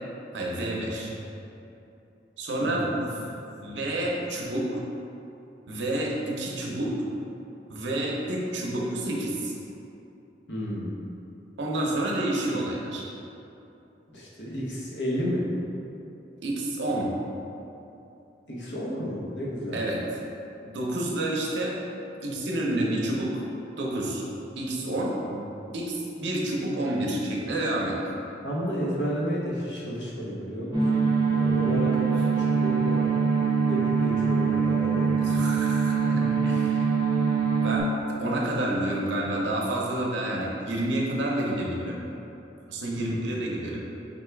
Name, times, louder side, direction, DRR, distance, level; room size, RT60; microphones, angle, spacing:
voice 1, 0.3-1.1 2.4-3.3 3.6-4.7 5.7-6.9 7.7-9.5 11.6-13.0 16.4-17.1 19.7-20.0 20.6-21.8 22.2-23.3 23.8-24.2 24.6-25.2 25.7-28.1 35.2-36.9 37.6-37.9 38.2-42.0 42.7-43.9, right 1 dB, 75° right, -3 dB, 0.7 m, -29 dB
voice 2, 2.6-2.9 10.5-10.9 14.1-15.5 18.5-19.8 25.3-25.4 28.4-33.1 33.7-35.1 43.0-43.3, equal, 75° left, -6 dB, 0.9 m, -32 dB
sound 1, 30.7-37.8, right 5 dB, 25° right, 0.7 m, -23 dB
5.2 x 2.3 x 3.3 m, 2.8 s
head